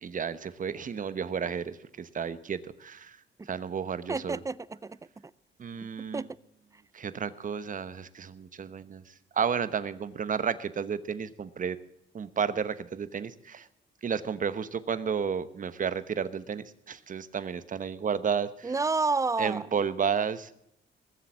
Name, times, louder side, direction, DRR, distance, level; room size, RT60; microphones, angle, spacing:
voice 1, 0.0-3.2 3.5-4.4 5.6-6.2 6.9-11.8 12.1-13.7 14.0-18.7 19.4-20.5, right 7 dB, 40° right, 14 dB, 1.1 m, -32 dB
voice 2, 4.1-5.0 6.1-6.3 18.6-19.6, right 3 dB, 15° right, 20 dB, 0.5 m, -29 dB
20.5 x 7.8 x 7.2 m, 0.76 s
cardioid pair, 90°, 20 cm